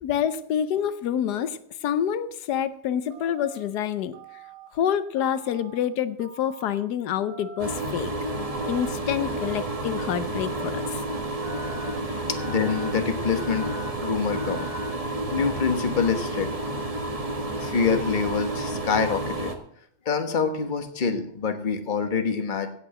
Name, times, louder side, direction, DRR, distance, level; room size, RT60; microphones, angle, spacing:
voice 1, 0.0-4.2 4.7-8.1 8.7-11.0 12.1-12.2, left 9 dB, 85° left, 14 dB, 1.3 m, -27 dB
Telephone, 3.1-3.6 4.1-4.7 5.2-5.8 6.2-6.8 7.2-7.8 8.3-8.9 9.4-10.0 10.4-10.9 11.4-11.9 12.3-12.9 13.3-13.9 14.3-14.9, right 2 dB, 45° right, 3.9 m, -44 dB
sound 1, 7.6-19.5, right 1 dB, 25° right, 1.4 m, -30 dB
voice 2, 12.3-14.7 15.3-16.5 17.6-19.5 20.0-22.7, left 5 dB, 35° left, 7 dB, 1.3 m, -26 dB
16.5 x 5.9 x 7.6 m, 0.66 s
omnidirectional pair, 1.7 m